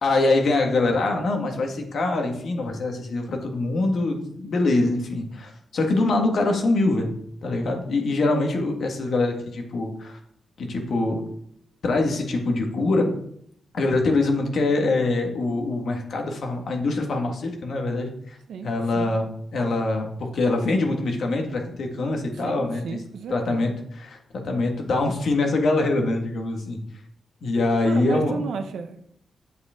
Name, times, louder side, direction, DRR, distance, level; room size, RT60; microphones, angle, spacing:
voice 1, 0.0-7.1 7.4-10.2 10.6-11.2 11.8-13.1 13.7-18.4 18.6-19.2 19.5-22.8 23.3-23.7 24.0-26.8 27.4-28.4, left 2 dB, 65° left, 2 dB, 1.8 m, -24 dB
voice 2, 18.5-19.1 22.3-23.7 27.8-29.0, right 5 dB, 90° right, 7 dB, 0.9 m, -33 dB
8.0 x 7.8 x 3.7 m, 0.68 s
cardioid pair, 105°, 0 cm